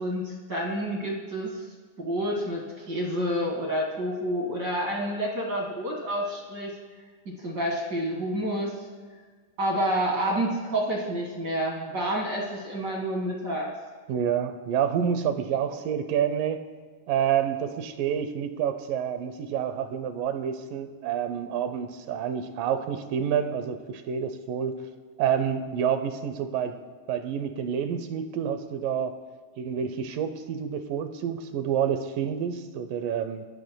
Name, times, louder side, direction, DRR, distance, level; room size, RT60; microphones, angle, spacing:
voice 1, 0.0-1.6 2.0-6.8 7.3-8.8 9.6-13.7, equal, 35° right, -1 dB, 1.8 m, -29 dB
voice 2, 14.1-16.7 17.1-24.8 25.2-26.8 27.1-29.2 29.6-33.5, right 8 dB, 75° right, 9 dB, 2.3 m, -28 dB
29.5 x 11.5 x 2.3 m, 1.5 s
omnidirectional pair, 4.2 m